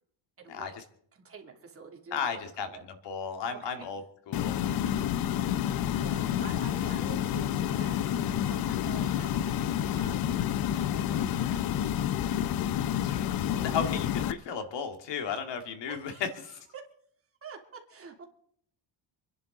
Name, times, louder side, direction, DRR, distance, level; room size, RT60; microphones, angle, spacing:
voice 1, 0.4-0.7 1.1-2.8 3.5-3.9 4.6-4.7 5.4-12.5 13.1-13.2 13.5-13.8 15.9-16.8 17.4-18.3, right 5 dB, 30° right, 1 dB, 2.8 m, -48 dB
voice 2, 2.1-2.7 3.0-4.0 4.3-4.6 13.0-16.6, left 6 dB, 65° left, 6 dB, 2.3 m, -34 dB
sound 1, 4.3-14.3, left 10 dB, 50° left, 0.7 m, -29 dB
28.0 x 10.5 x 3.9 m, 0.64 s
cardioid pair, 145°, 45 cm